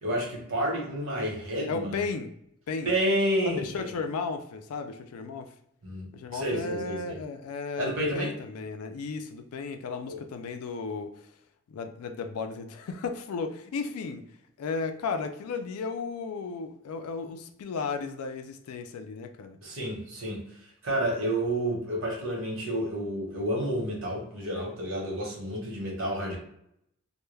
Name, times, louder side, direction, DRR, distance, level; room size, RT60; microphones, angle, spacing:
voice 1, 0.0-2.0 2.8-3.9 5.8-7.2 7.8-8.3 10.1-10.2 19.6-20.4 20.8-26.4, right 1 dB, 60° right, 0.9 m, -30 dB
voice 2, 1.7-2.3 2.7-2.9 3.4-5.5 6.1-11.3 11.7-14.3 14.6-19.6, left 4 dB, 90° left, 0.4 m, -34 dB
2.2 x 2.1 x 3.1 m
head